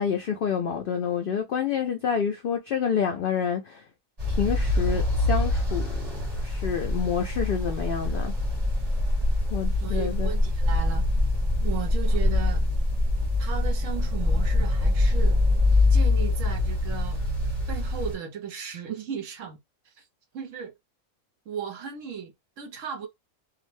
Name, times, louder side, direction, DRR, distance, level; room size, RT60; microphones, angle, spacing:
voice 1, 0.0-3.8 4.3-8.3 9.5-10.3, left 7 dB, 80° left, 0.5 m, -28 dB
sound 1, 4.2-18.1, left 2 dB, 30° right, 1.0 m, -24 dB
voice 2, 9.8-11.1 11.6-12.6 13.4-15.4 15.9-17.2 17.7-19.6 20.3-20.7 21.5-23.1, right 7 dB, 65° right, 1.0 m, -35 dB
2.5 x 2.1 x 3.1 m
omnidirectional pair, 1.5 m